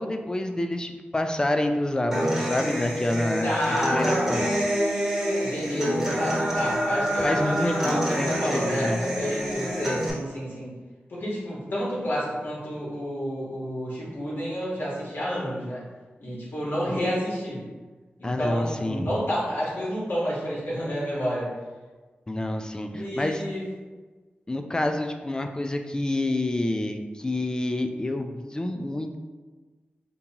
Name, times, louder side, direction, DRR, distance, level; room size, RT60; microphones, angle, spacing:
voice 1, 0.0-4.4 7.2-9.0 18.2-19.1 22.3-23.4 24.5-29.2, left 1 dB, 20° left, 5 dB, 0.3 m, -28 dB
Human voice / Acoustic guitar, 2.1-10.1, equal, 10° right, 1.1 m, -27 dB
voice 2, 3.4-4.3 5.4-10.8 11.1-15.8 16.2-17.6 18.2-21.5 22.9-23.6, equal, 70° left, -6 dB, 1.5 m, -29 dB
5.3 x 2.3 x 2.8 m, 1.3 s
wide cardioid pair, 110°, 4 cm